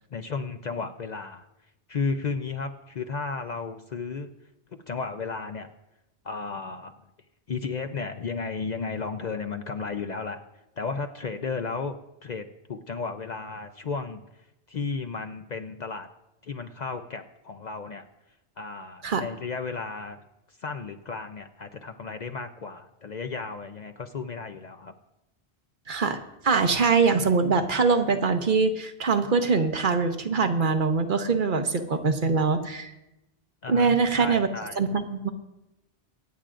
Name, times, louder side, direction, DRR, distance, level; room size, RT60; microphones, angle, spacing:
voice 1, 0.1-1.5 1.9-4.3 4.9-5.7 6.2-7.0 7.5-10.4 10.8-14.2 14.7-16.1 16.4-18.0 18.6-20.2 20.5-24.9 33.6-34.8, left 4 dB, 50° left, 7 dB, 0.6 m, -34 dB
voice 2, 25.9-26.2 26.4-32.9 33.7-34.5 34.8-35.3, right 4 dB, 55° right, 7 dB, 0.9 m, -23 dB
25.0 x 8.8 x 2.5 m, 0.94 s
omnidirectional pair, 1.1 m